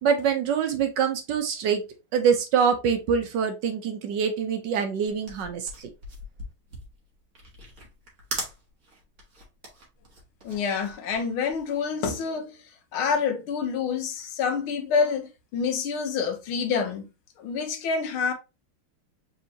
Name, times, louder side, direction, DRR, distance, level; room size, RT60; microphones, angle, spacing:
voice 1, 0.0-1.8 2.1-5.6, right 7 dB, 65° right, 1.2 m, -24 dB
sound 1, 5.1-11.7, right 1 dB, 45° right, 1.6 m, -40 dB
voice 2, 10.4-12.6 12.9-17.1 17.4-18.3, left 6 dB, 85° left, 1.8 m, -27 dB
4.2 x 3.6 x 2.8 m
omnidirectional pair, 2.2 m